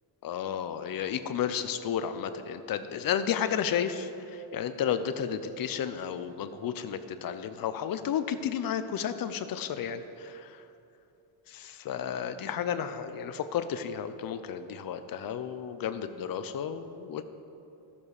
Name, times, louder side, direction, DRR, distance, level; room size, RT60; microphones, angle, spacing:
voice 1, 0.2-10.6 11.5-17.2, left 8 dB, 50° left, 11 dB, 0.6 m, -32 dB
13.0 x 7.0 x 4.9 m, 2.8 s
cardioid pair, 145°, 45 cm